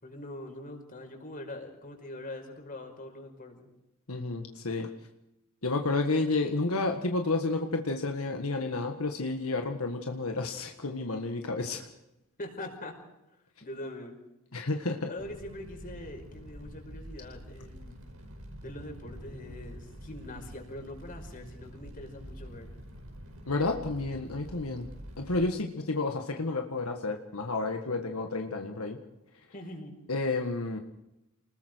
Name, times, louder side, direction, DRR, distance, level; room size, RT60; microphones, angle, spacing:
voice 1, 0.0-3.7 12.4-13.0 13.6-14.1 15.1-18.0 18.6-22.7 29.5-30.0, left 1 dB, 40° left, 3 dB, 5.1 m, -43 dB
voice 2, 4.1-4.9 5.6-11.9 14.5-15.1 23.5-24.9 25.2-29.0 30.1-30.8, left 3 dB, 90° left, 4 dB, 1.7 m, -31 dB
Fire, 15.2-25.5, equal, 85° right, 5.0 m, -46 dB
29.0 x 20.5 x 4.6 m, 0.90 s
head